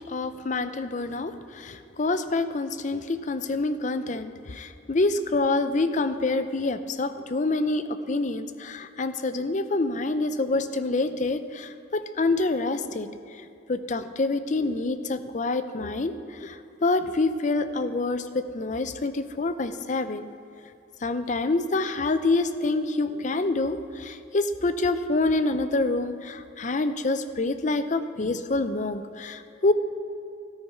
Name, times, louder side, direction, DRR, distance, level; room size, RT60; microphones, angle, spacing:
voice 1, 0.1-13.1 13.7-20.3 21.0-29.7, left 2 dB, 40° left, 11 dB, 0.5 m, -27 dB
13.0 x 9.1 x 5.6 m, 2.7 s
head